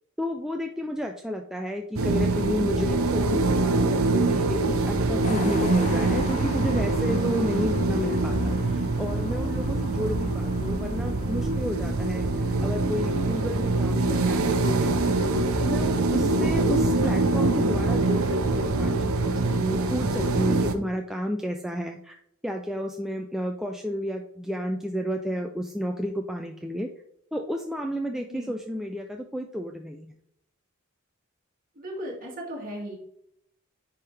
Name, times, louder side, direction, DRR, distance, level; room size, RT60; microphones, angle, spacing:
voice 1, 0.2-15.2 15.6-22.1 22.4-26.9 27.3-30.1, equal, ahead, 3 dB, 0.3 m, -32 dB
sound 1, 2.0-20.7, right 2 dB, 80° right, 0.7 m, -24 dB
sound 2, 5.2-13.5, left 2 dB, 35° left, 0.6 m, -41 dB
Musical instrument, 8.5-15.3, left 2 dB, 50° left, 1.7 m, -44 dB
voice 2, 31.8-33.0, equal, 40° right, -2 dB, 2.1 m, -36 dB
9.9 x 3.6 x 3.3 m, 0.72 s
head